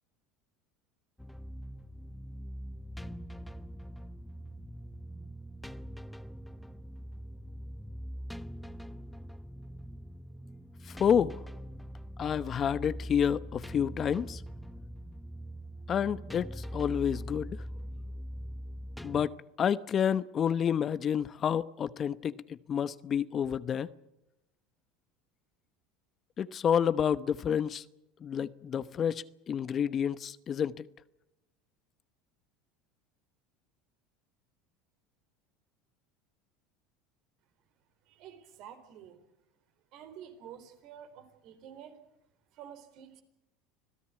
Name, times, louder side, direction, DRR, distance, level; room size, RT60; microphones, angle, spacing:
sound 1, 1.2-19.3, equal, 5° left, 1.0 m, -43 dB
voice 1, 10.8-11.4 12.2-14.4 15.9-17.6 19.0-23.9 26.4-27.8 28.2-30.8, left 8 dB, 40° left, 0.9 m, -29 dB
voice 2, 38.1-39.2 39.9-42.0 42.5-43.2, right 9 dB, 60° right, 4.0 m, -49 dB
26.5 x 17.0 x 8.4 m
hypercardioid pair, 90°, 0 cm